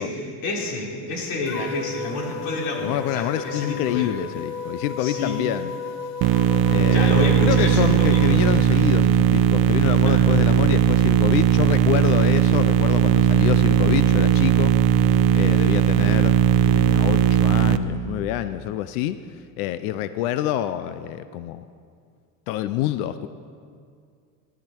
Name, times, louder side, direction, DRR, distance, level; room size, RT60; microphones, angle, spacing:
voice 1, 0.0-4.1 5.0-5.4 6.9-8.7 10.0-10.3, left 2 dB, 65° left, -2 dB, 4.0 m, -29 dB
sound 1, 1.5-8.6, left 6 dB, 35° left, 0.8 m, -34 dB
voice 2, 2.8-5.7 6.7-16.4 16.6-21.6 22.5-23.3, left 12 dB, 80° left, 12 dB, 0.7 m, -27 dB
sound 2, 6.2-17.8, right 10 dB, 55° right, 0.8 m, -18 dB
18.5 x 12.0 x 4.5 m, 2.2 s
supercardioid pair, 130°, 44 cm